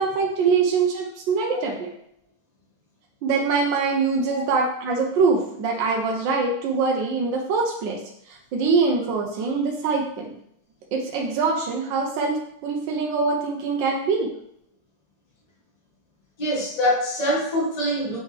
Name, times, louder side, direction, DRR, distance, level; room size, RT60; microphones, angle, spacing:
voice 1, 0.0-1.9 3.2-8.0 8.3-10.3 10.9-14.3, right 4 dB, 80° right, 1 dB, 1.4 m, -23 dB
voice 2, 16.4-18.2, equal, 20° left, -5 dB, 1.5 m, -24 dB
6.1 x 5.7 x 3.2 m, 0.71 s
omnidirectional pair, 2.0 m